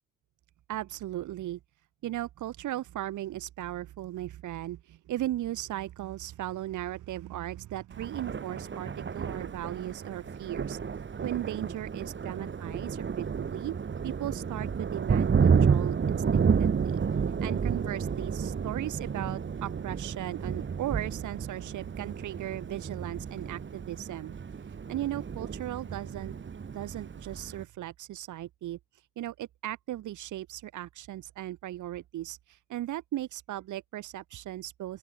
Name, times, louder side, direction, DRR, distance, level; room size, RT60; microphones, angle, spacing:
voice 1, 0.7-1.6 2.0-13.7 14.0-17.0 17.4-26.3 26.7-35.0, right 14 dB, 75° right, 1.8 m, -37 dB
Thunder, 7.9-27.6, right 6 dB, 40° right, 2.6 m, -31 dB
open air
cardioid pair, 90°, 30 cm